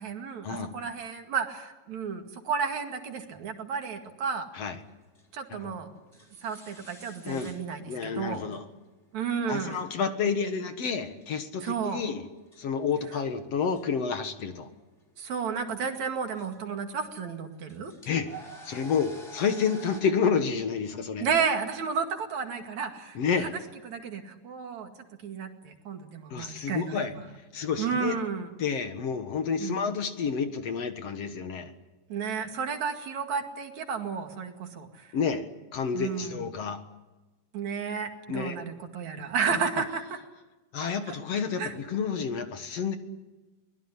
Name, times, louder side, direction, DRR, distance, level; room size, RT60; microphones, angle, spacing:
voice 1, 0.0-4.5 5.3-5.9 6.4-8.4 9.1-9.8 11.6-12.0 15.2-17.9 21.2-23.6 23.8-24.9 25.2-27.2 27.8-28.5 29.6-30.0 32.1-35.1 35.9-36.5 37.5-40.2 40.8-41.2 41.6-41.7, right 6 dB, 65° right, 5 dB, 3.5 m, -32 dB
sound 1, 4.7-20.0, right 1 dB, 20° left, 4.2 m, -50 dB
voice 2, 7.9-8.6 9.5-12.2 12.6-14.7 18.1-18.3 18.7-21.3 23.2-23.5 26.3-27.1 27.5-28.2 28.6-31.7 35.1-35.5 35.7-36.8 38.3-38.6 40.7-43.0, left 6 dB, 60° left, 8 dB, 2.5 m, -29 dB
23.0 x 21.0 x 10.0 m, 1.1 s
omnidirectional pair, 3.5 m